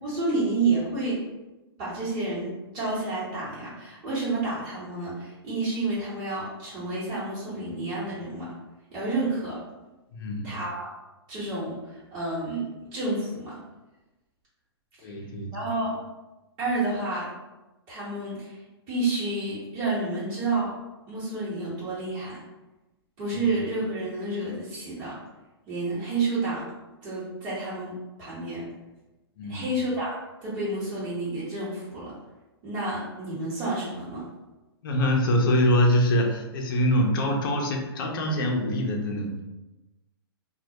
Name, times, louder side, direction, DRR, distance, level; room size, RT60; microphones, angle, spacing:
voice 1, 0.0-1.2 1.8-8.5 8.9-9.6 10.4-10.9 11.3-13.6 15.0-15.2 15.5-15.9 16.6-17.3 17.9-18.6 18.9-20.7 21.1-22.4 23.2-25.2 25.7-26.6 27.0-28.7 29.5-32.1 32.6-34.2, right 2 dB, 30° right, -10 dB, 1.1 m, -30 dB
voice 2, 10.1-10.5 15.0-15.6 29.4-29.6 34.8-39.4, equal, 55° left, 1 dB, 0.6 m, -24 dB
2.2 x 2.0 x 2.7 m, 1.1 s
hypercardioid pair, 135°, 14 cm